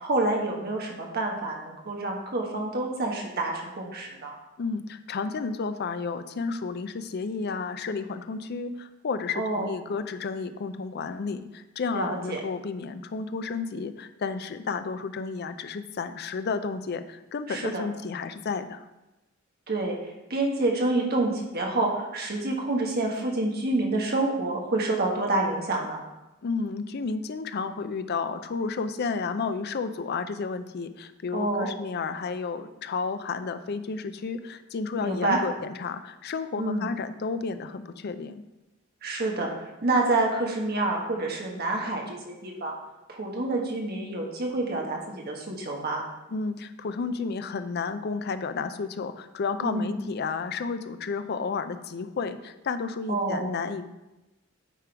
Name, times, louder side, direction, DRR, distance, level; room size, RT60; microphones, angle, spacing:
voice 1, 0.0-4.3 9.3-9.7 11.9-12.4 17.5-17.8 19.7-20.0 20.3-26.0 31.3-31.7 35.0-35.4 36.6-36.9 39.0-42.7 43.1-46.0 49.6-49.9 53.1-53.5, right 2 dB, 50° right, 1 dB, 1.3 m, -28 dB
voice 2, 4.6-18.8 26.4-38.4 46.3-53.9, left 4 dB, 50° left, 11 dB, 0.4 m, -32 dB
9.1 x 3.8 x 4.5 m, 1.0 s
head